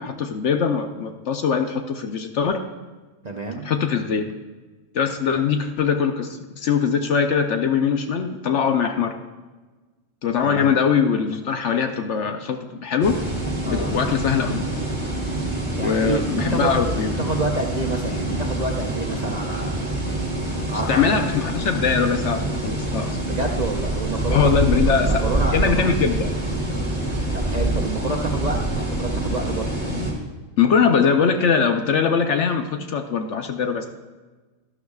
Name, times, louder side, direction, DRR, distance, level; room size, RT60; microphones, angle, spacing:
voice 1, 0.0-2.6 3.6-4.3 4.9-9.2 10.2-13.2 13.7-14.6 15.8-17.2 20.7-23.2 24.3-25.3 25.5-26.3 30.6-33.9, left 6 dB, 65° left, 6 dB, 0.9 m, -22 dB
voice 2, 3.2-3.7 10.4-10.7 13.6-13.9 15.8-21.3 23.2-24.5 24.8-25.9 27.3-29.8, right 3 dB, 40° right, 0 dB, 0.6 m, -29 dB
sound 1, 13.0-30.1, right 1 dB, 20° right, 2.1 m, -26 dB
12.0 x 11.5 x 2.3 m, 1.3 s
omnidirectional pair, 1.5 m